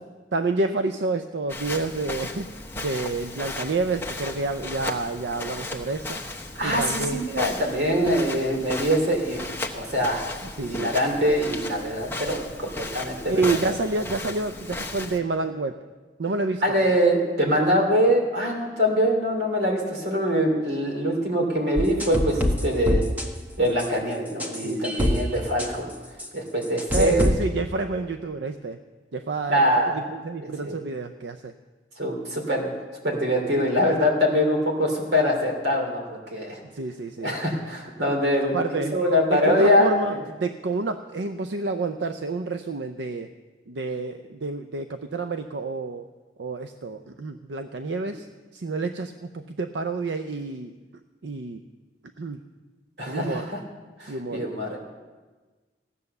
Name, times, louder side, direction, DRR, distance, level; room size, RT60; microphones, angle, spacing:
voice 1, 0.3-2.5 2.8-6.2 6.6-7.2 10.6-10.9 13.3-15.8 16.2-16.9 24.6-25.3 26.9-28.8 29.1-29.7 29.9-31.5 36.7-37.4 38.5-43.3 43.7-46.1 46.4-48.3 48.5-50.7 51.2-51.6 52.2-52.4 53.1-53.5 54.1-54.5, right 3 dB, 85° right, 8 dB, 0.6 m, -29 dB
Walk footsteps, 1.5-15.2, left 2 dB, 15° left, 1.0 m, -35 dB
voice 2, 6.6-10.3 10.6-13.7 16.6-23.0 23.6-25.9 26.3-27.2 29.5-30.1 30.4-30.8 32.0-32.7 33.0-36.6 37.2-40.2 53.0-53.6 54.0-54.8, equal, 65° right, 1 dB, 3.0 m, -23 dB
sound 1, 21.8-23.3 23.8-23.9 24.4-25.2 25.6-25.7 26.2-26.3 26.8-27.3, left 1 dB, 10° right, 1.1 m, -24 dB
16.0 x 8.3 x 6.7 m, 1.3 s
head